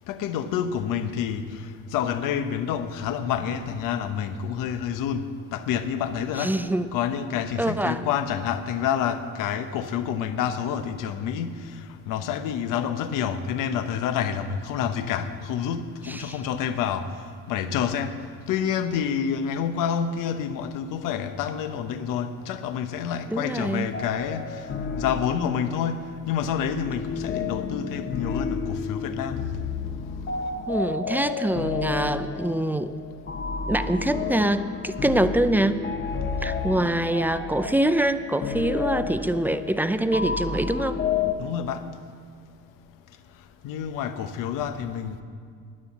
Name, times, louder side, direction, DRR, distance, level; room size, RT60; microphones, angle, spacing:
voice 1, 0.1-5.2 5.5-6.6 6.9-11.8 12.1-17.1 17.5-18.2 18.5-24.6 25.0-29.6 41.4-41.8 43.6-45.2, left 8 dB, 70° left, 0.9 m, -28 dB
voice 2, 6.4-6.9 7.6-8.0 16.1-16.4 23.3-23.9 30.7-33.0 33.7-35.8 36.4-41.0, right 1 dB, 5° right, 0.5 m, -25 dB
sound 1, 23.9-41.3, left 5 dB, 30° left, 1.0 m, -31 dB
9.9 x 9.5 x 7.1 m
supercardioid pair, 85°, 34 cm